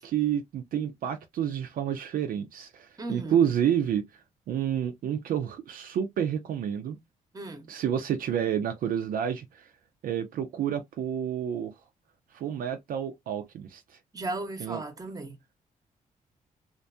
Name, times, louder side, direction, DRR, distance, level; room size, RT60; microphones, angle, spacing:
voice 1, 0.0-4.0 4.5-7.0 7.7-9.7 10.0-11.7 12.3-13.8 14.6-14.8, right 9 dB, 70° right, 0.4 m, -29 dB
voice 2, 3.0-3.5 7.3-7.7 14.1-15.6, right 2 dB, 25° right, 0.8 m, -36 dB
2.5 x 2.2 x 2.5 m
cardioid pair, 75°, 15 cm